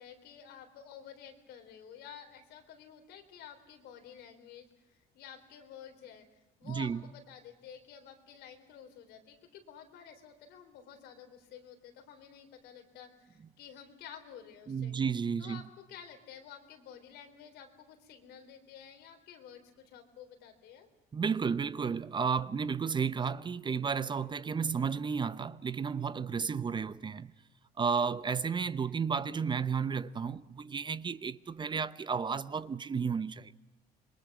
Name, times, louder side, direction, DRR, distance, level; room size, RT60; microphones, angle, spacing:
voice 1, 0.0-6.3 6.6-15.0 15.4-20.9, left 8 dB, 85° left, 3.9 m, -51 dB
voice 2, 6.6-7.0 14.7-15.6 21.1-27.3 27.8-33.5, right 6 dB, 25° right, 0.7 m, -32 dB
27.0 x 22.0 x 6.1 m
cardioid pair, 110°, 17 cm